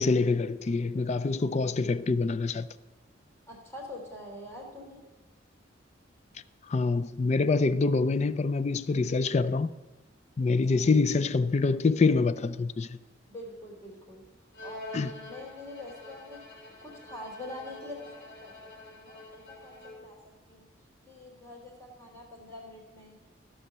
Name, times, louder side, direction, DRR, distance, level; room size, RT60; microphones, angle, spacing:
voice 1, 0.0-2.7 6.7-9.7 10.4-13.0 14.9-15.1, left 3 dB, 35° left, 0.4 m, -26 dB
voice 2, 3.5-5.0 10.4-10.8 13.3-14.2 14.6-16.5 16.8-18.5 18.9-20.2 20.5-20.7 21.1-23.1, left 1 dB, 15° left, 3.0 m, -44 dB
Bowed string instrument, 14.5-20.2, left 2 dB, 65° left, 3.7 m, -47 dB
14.5 x 5.6 x 6.8 m
head